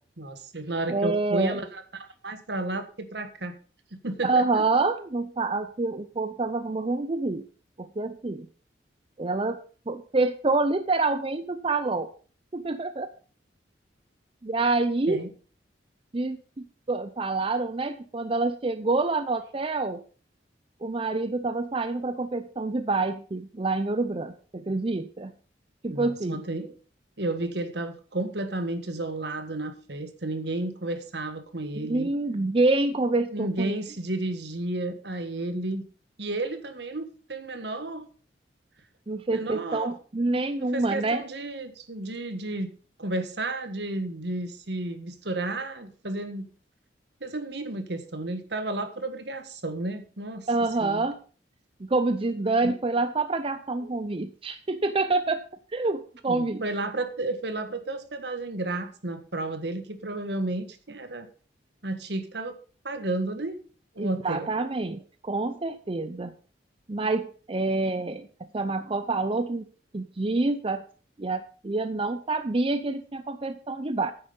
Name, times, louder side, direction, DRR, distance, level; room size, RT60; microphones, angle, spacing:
voice 1, 0.2-3.6 4.0-4.6 15.1-15.3 25.9-26.7 27.2-32.1 33.3-35.8 36.2-38.0 39.3-39.9 40.6-42.7 43.0-46.5 47.2-50.5 50.8-51.1 52.6-52.7 56.3-61.3 61.8-62.6 62.8-63.6 63.9-64.5, right 2 dB, 65° right, 9 dB, 1.5 m, -32 dB
voice 2, 0.9-1.6 4.2-7.5 7.8-8.5 9.2-9.6 9.9-12.1 12.5-13.1 14.4-15.2 16.1-16.4 16.9-20.0 20.8-25.3 25.8-26.4 31.9-33.8 39.1-41.2 50.5-51.2 51.8-55.4 55.7-56.6 64.0-66.3 66.9-68.3 68.5-69.7 69.9-70.8 71.2-74.1, right 3 dB, 30° right, 10 dB, 0.6 m, -27 dB
9.5 x 9.1 x 5.4 m, 0.39 s
head